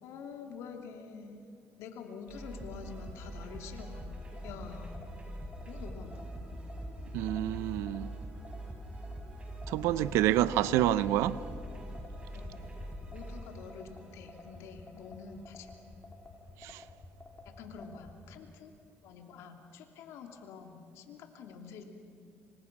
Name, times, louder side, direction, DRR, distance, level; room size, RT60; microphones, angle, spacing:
voice 1, 0.0-1.4 1.8-4.1 4.4-5.0 5.6-6.3 10.3-10.9 12.3-12.6 13.1-15.7 17.4-18.7 19.0-21.8, left 6 dB, 80° left, 2.9 m, -47 dB
sound 1, 2.3-15.4, right 1 dB, 25° right, 7.0 m, -44 dB
sound 2, 4.4-18.1, left 3 dB, 25° left, 4.7 m, -50 dB
voice 2, 7.1-8.1 9.7-11.4 16.6-16.8, right 13 dB, 90° right, 0.8 m, -28 dB
27.5 x 25.5 x 6.2 m
cardioid pair, 100°, 5 cm